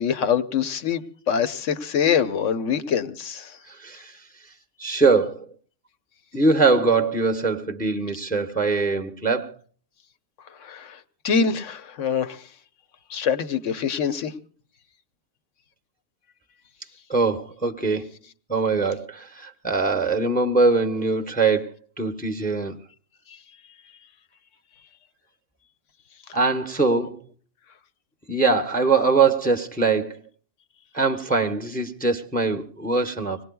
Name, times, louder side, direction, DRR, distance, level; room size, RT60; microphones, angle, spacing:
voice 1, 0.0-3.5 10.6-11.0 11.2-12.4 13.1-14.3, left 7 dB, 70° left, 1.3 m, -24 dB
voice 2, 3.7-4.2 4.8-5.5 6.3-9.6 17.1-18.1 18.5-21.7 22.0-22.8 26.3-27.2 28.3-30.2 30.9-33.4, right 4 dB, 10° left, 0.8 m, -22 dB
26.5 x 19.0 x 2.3 m
omnidirectional pair, 1.4 m